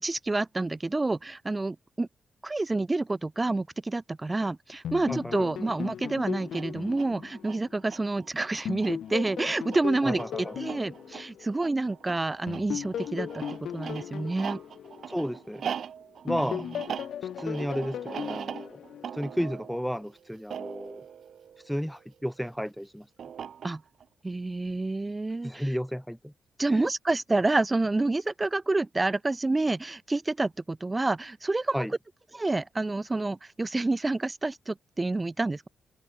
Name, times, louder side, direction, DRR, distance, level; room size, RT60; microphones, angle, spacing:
voice 1, 0.0-2.1 2.4-13.4 13.7-14.6 16.4-16.7 23.6-23.8 24.2-25.8 26.6-31.8 32.3-35.7, right 2 dB, 15° right, 0.8 m, -28 dB
sound 1, 4.8-8.2 8.6-11.9 12.5-15.8 16.3-19.5, left 9 dB, 75° left, 1.9 m, -37 dB
voice 2, 5.1-5.5 10.0-10.5 15.1-15.6 16.2-16.6 17.4-18.8 19.1-21.0 21.6-23.0 25.4-26.3 26.7-26.9 31.7-31.9, equal, ahead, 0.3 m, -32 dB
sound 2, 6.4-22.2 23.2-24.0, right 8 dB, 60° right, 2.8 m, -41 dB
open air
cardioid pair, 135°, 0 cm